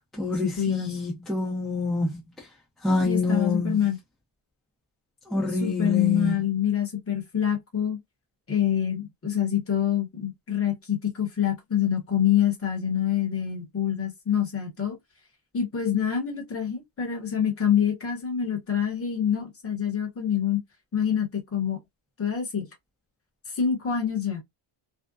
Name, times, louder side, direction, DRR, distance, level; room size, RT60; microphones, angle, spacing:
voice 1, 0.0-2.5 2.8-3.8 5.3-6.3, left 2 dB, ahead, 0.5 m, -27 dB
voice 2, 0.6-1.0 3.0-4.0 5.6-8.0 8.5-15.0 15.5-20.6 20.9-21.8 22.2-22.7 23.5-24.4, left 9 dB, 30° left, 0.9 m, -26 dB
2.6 x 2.1 x 2.2 m
cardioid pair, 175°, 49 cm